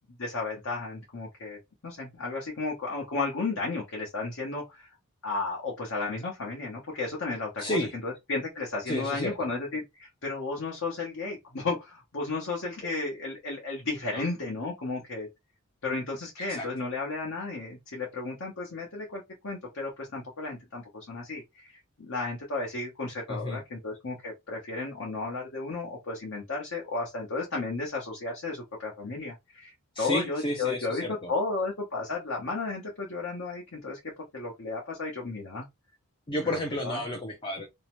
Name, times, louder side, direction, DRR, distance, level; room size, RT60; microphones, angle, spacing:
voice 1, 0.2-1.6 1.8-4.9 5.2-15.3 15.8-34.0 34.3-35.7 36.3-36.4 36.8-37.0, left 3 dB, 60° left, 0.9 m, -33 dB
voice 2, 7.6-7.9 8.9-9.3 14.1-14.2 16.5-16.7 23.3-23.6 30.0-31.3 36.3-37.7, left 1 dB, 20° left, 0.4 m, -31 dB
2.7 x 2.0 x 3.0 m
head